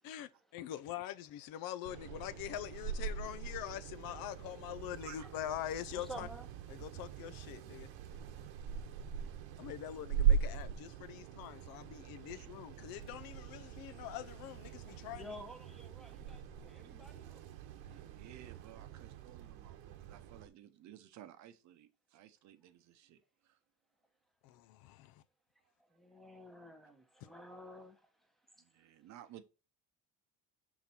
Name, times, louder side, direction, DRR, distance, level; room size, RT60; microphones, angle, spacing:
voice 1, 0.0-6.3 6.7-7.9 9.6-15.3 24.4-25.2, left 12 dB, 70° left, 0.6 m, -44 dB
sound 1, 1.8-20.5, right 7 dB, 90° right, 1.0 m, -40 dB
voice 2, 5.9-6.5 15.1-17.4 25.9-28.3, equal, ahead, 0.9 m, -51 dB
voice 3, 16.6-16.9 17.9-23.6 28.6-29.4, right 12 dB, 50° right, 0.7 m, -56 dB
6.0 x 4.0 x 4.3 m
cardioid pair, 165°, 36 cm